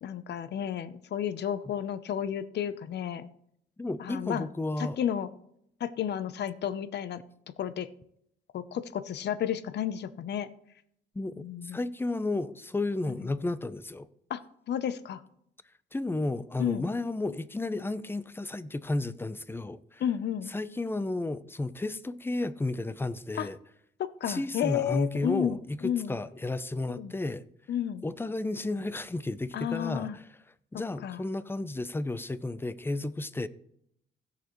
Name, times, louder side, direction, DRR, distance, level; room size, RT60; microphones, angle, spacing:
voice 1, 0.0-3.3 4.0-4.5 4.8-5.3 5.8-7.2 7.6-7.9 8.5-10.5 11.4-11.8 13.1-13.3 14.3-14.4 14.7-15.2 16.6-16.9 20.0-20.5 23.4-23.5 24.0-25.6 25.8-26.2 26.9-27.1 27.7-28.0 29.5-30.2 31.0-31.2, left 9 dB, 60° left, 0.7 m, -32 dB
voice 2, 3.8-5.0 11.1-14.1 15.9-20.0 20.5-23.6 24.3-27.4 28.0-30.2 30.7-33.5, left 2 dB, 10° left, 0.6 m, -32 dB
16.0 x 6.7 x 3.1 m
cardioid pair, 90°, 20 cm